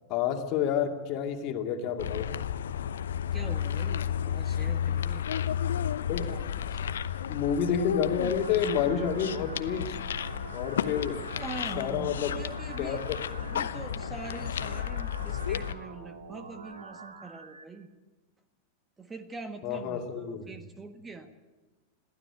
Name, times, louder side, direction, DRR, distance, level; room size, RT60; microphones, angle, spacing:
voice 1, 0.1-2.3 6.1-6.3 7.3-10.0 10.5-11.2 11.8-12.3 12.8-13.2 19.6-20.4, left 8 dB, 40° left, 4 dB, 2.2 m, -29 dB
sound 1, 2.0-15.7, left 9 dB, 65° left, 0.8 m, -32 dB
voice 2, 3.3-5.3 6.3-7.0 11.3-13.0 13.4-17.9 19.0-21.3, right 3 dB, 15° right, 9 dB, 1.5 m, -43 dB
sound 2, 7.6-17.6, right 4 dB, 75° right, 2.3 m, -46 dB
22.0 x 15.5 x 8.1 m, 1.2 s
figure-of-eight pair, 90°, 0 cm